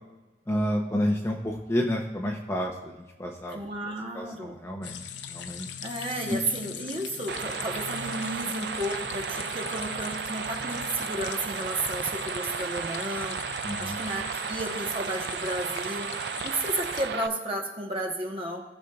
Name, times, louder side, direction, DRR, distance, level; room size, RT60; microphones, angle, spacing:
voice 1, 0.5-3.6 4.1-5.0 5.3-5.7 6.3-6.4 13.6-14.0, equal, 15° left, 1 dB, 0.7 m, -30 dB
voice 2, 3.5-4.6 5.8-18.6, right 1 dB, 30° right, 1 dB, 1.1 m, -33 dB
sound 1, 4.8-17.1, left 8 dB, 85° left, 0.6 m, -40 dB
sound 2, 7.3-17.3, right 7 dB, 65° right, 0.3 m, -34 dB
17.5 x 6.5 x 2.4 m, 1.1 s
head